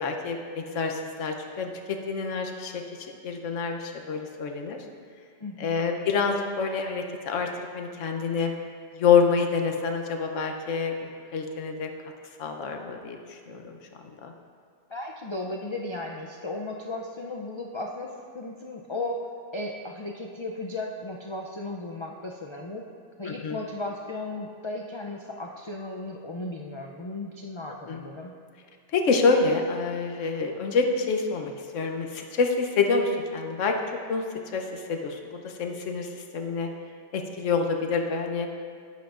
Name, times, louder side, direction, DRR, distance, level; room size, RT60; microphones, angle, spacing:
voice 1, 0.0-4.8 5.6-7.5 7.7-8.5 8.9-10.9 11.3-11.9 12.4-13.6 14.2-14.3 23.4-23.6 27.9-28.0 28.9-33.7 34.1-34.2 34.5-36.7 37.1-38.5, left 5 dB, 90° left, 3 dB, 1.2 m, -27 dB
voice 2, 5.4-5.8 14.9-19.3 19.5-22.9 23.2-28.4, left 2 dB, 45° left, 0 dB, 0.3 m, -35 dB
11.5 x 10.5 x 2.5 m, 2.2 s
omnidirectional pair, 1.2 m